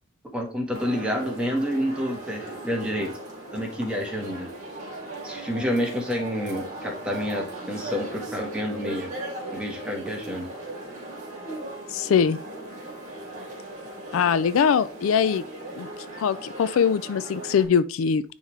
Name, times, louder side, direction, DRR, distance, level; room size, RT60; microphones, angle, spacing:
voice 1, 0.3-3.1 3.5-4.5 5.2-9.1 9.5-10.5, equal, 5° right, 1.4 m, -29 dB
sound 1, 0.7-17.6, right 1 dB, 35° right, 2.4 m, -38 dB
voice 2, 11.9-12.4 14.1-15.4 15.8-15.9 16.2-18.2, left 7 dB, 75° left, 0.4 m, -22 dB
9.8 x 3.6 x 3.2 m
head